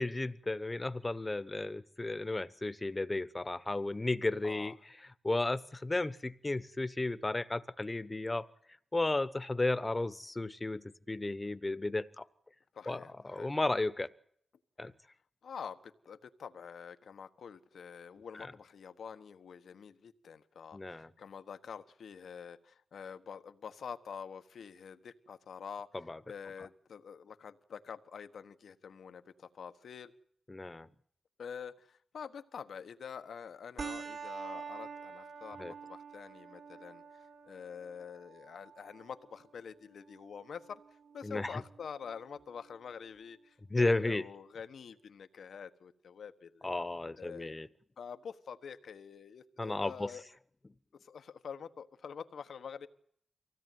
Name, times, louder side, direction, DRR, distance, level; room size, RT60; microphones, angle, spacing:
voice 1, 0.0-4.8 5.2-8.5 8.9-12.2 12.9-14.1 14.8-14.9 18.3-18.5 20.7-21.1 25.9-26.2 26.6-26.7 30.5-30.9 35.6-35.7 41.2-41.6 43.7-44.3 46.6-47.7 49.6-50.1, left 2 dB, 20° left, 15 dB, 1.0 m, -34 dB
voice 2, 4.4-4.7 12.7-13.5 15.4-25.9 26.3-30.1 31.4-37.0 37.5-40.8 41.1-46.7 47.2-47.5 48.0-50.2 51.0-52.9, left 7 dB, 85° left, 11 dB, 1.4 m, -47 dB
sound 1, 33.8-42.8, right 6 dB, 55° right, 1.9 m, -48 dB
24.5 x 17.0 x 9.4 m, 0.66 s
wide cardioid pair, 105°, 0 cm